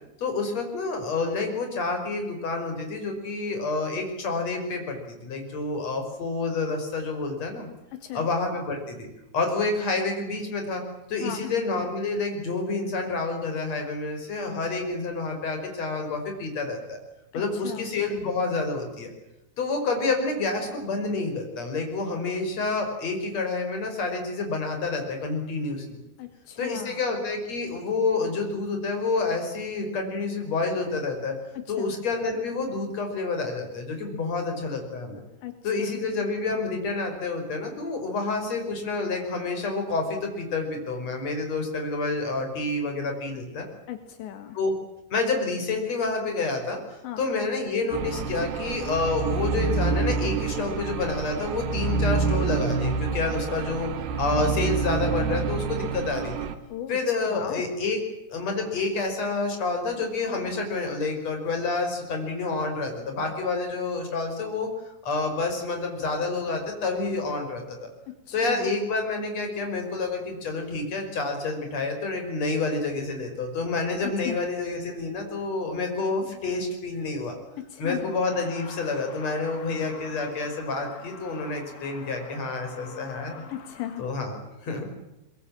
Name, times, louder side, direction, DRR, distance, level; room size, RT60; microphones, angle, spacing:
voice 1, 0.2-7.7 8.1-9.1 9.3-10.8 11.1-17.0 17.3-19.1 19.6-26.0 26.6-31.4 31.7-35.2 35.6-43.7 44.5-44.7 45.1-53.9 54.2-56.3 56.9-58.0 58.3-67.8 68.3-77.3 77.8-83.4 84.0-84.3 84.6-85.0, left 3 dB, 35° left, 4 dB, 6.2 m, -28 dB
voice 2, 7.9-8.3 11.2-11.5 17.3-17.9 26.2-27.0 31.6-31.9 35.4-36.0 43.9-44.6 47.0-47.3 56.7-57.0 57.3-57.7 68.1-68.8 74.3-74.4 77.6-78.1 83.5-84.1, left 11 dB, 80° left, 8 dB, 3.8 m, -36 dB
sound 1, 47.9-56.5, right 5 dB, 65° right, 3.6 m, -27 dB
Truck, 78.2-84.0, left 6 dB, 65° left, 4.7 m, -45 dB
24.0 x 22.0 x 8.8 m, 0.95 s
omnidirectional pair, 5.1 m